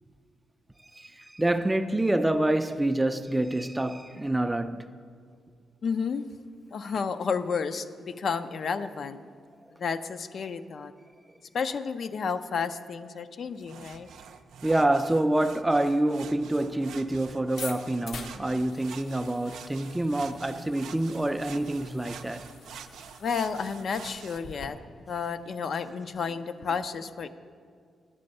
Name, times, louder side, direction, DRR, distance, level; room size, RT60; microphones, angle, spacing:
voice 1, 0.8-4.9 14.6-22.5, right 1 dB, 10° right, 0.4 m, -27 dB
voice 2, 5.8-6.3 6.7-9.2 9.8-10.9 11.5-14.1 23.2-24.8 25.1-27.3, left 5 dB, 55° left, 0.4 m, -31 dB
sound 1, 13.6-24.4, right 7 dB, 85° right, 0.4 m, -47 dB
sound 2, 17.4-24.7, left 4 dB, 70° left, 0.8 m, -46 dB
9.7 x 6.7 x 5.3 m
cardioid pair, 100°, 0 cm